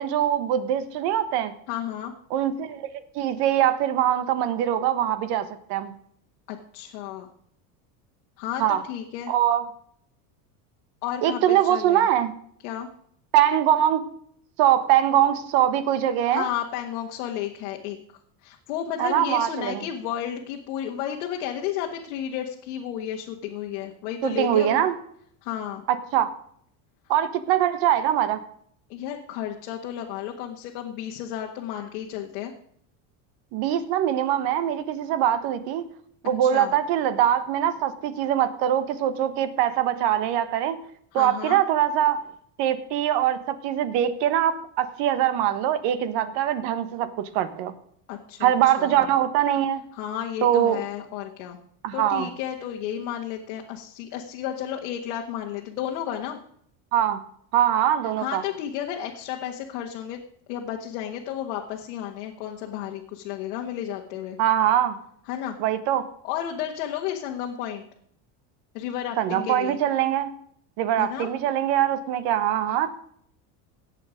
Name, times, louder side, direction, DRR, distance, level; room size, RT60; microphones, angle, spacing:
voice 1, 0.0-1.5 2.3-5.9 8.6-8.8 9.3-9.7 11.2-12.3 13.3-14.0 14.6-16.5 19.0-19.9 24.2-24.9 25.9-26.3 27.1-28.4 33.5-35.9 36.2-40.8 41.1-42.2 42.6-47.7 48.4-49.8 50.4-50.8 51.8-52.3 56.9-57.2 57.5-58.4 64.4-64.9 65.6-66.0 69.2-70.3 70.8-72.9, right 11 dB, 65° right, 12 dB, 1.4 m, -23 dB
voice 2, 1.7-2.1 6.5-7.3 8.4-9.3 11.0-12.1 12.6-12.9 16.3-18.0 18.4-24.8 25.4-25.8 28.9-32.5 36.4-36.7 41.1-41.6 48.1-48.5 48.8-49.1 49.9-51.6 51.9-56.4 58.2-60.2 60.5-64.4 65.3-65.5 66.2-67.8 68.7-69.8 71.0-71.3, left 10 dB, 80° left, 0 dB, 1.6 m, -32 dB
17.5 x 6.8 x 5.1 m, 0.66 s
supercardioid pair, 130°, 44 cm